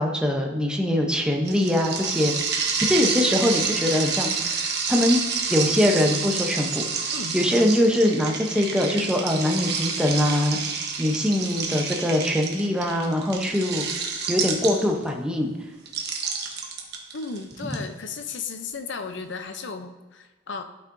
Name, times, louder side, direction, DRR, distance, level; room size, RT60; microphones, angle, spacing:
voice 1, 0.0-2.3 2.8-5.2 5.5-10.6 11.0-13.9 14.3-15.5, left 1 dB, 5° right, 0 dB, 0.8 m, -23 dB
sound 1, 1.5-15.1 15.9-17.7, right 5 dB, 55° right, 1.1 m, -28 dB
voice 2, 17.1-20.6, left 4 dB, 60° left, 8 dB, 0.6 m, -34 dB
12.0 x 5.5 x 2.6 m, 1.2 s
head